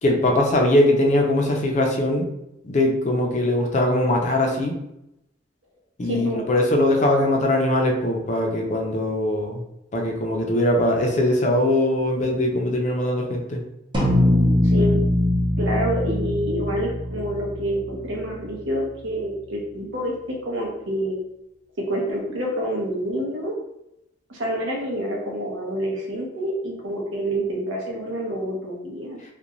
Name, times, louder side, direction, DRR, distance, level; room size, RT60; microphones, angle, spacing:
voice 1, 0.0-2.3 2.6-4.7 6.0-9.6 9.9-13.6, left 1 dB, 35° left, 1 dB, 0.4 m, -21 dB
voice 2, 6.0-6.4 14.6-15.0 15.6-21.2 21.8-23.5 24.3-29.2, equal, 75° right, -1 dB, 0.7 m, -27 dB
sound 1, 13.9-18.5, left 1 dB, 25° right, 0.5 m, -22 dB
2.5 x 2.1 x 2.9 m, 0.83 s
head